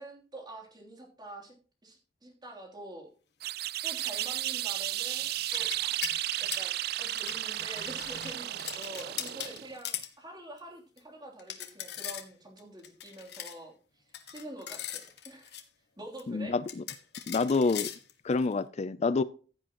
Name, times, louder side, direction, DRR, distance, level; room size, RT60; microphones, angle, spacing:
voice 1, 0.0-1.5 1.8-3.1 3.8-6.0 6.4-15.5 16.0-16.5, right 1 dB, 25° right, -1 dB, 3.1 m, -46 dB
sound 1, 3.4-9.8, right 14 dB, 60° right, 0.4 m, -34 dB
sound 2, 3.6-4.2 4.5-6.7 7.1-10.1 10.6-10.7 11.0-11.1 11.4-12.3 12.6-13.6 14.1-15.6 16.2-16.3 16.7-18.5, left 10 dB, 65° left, 1.6 m, -40 dB
voice 2, 16.3-16.8 17.3-17.9 18.2-19.2, left 3 dB, 40° left, 15 dB, 0.4 m, -27 dB
15.5 x 8.7 x 3.0 m, 0.38 s
head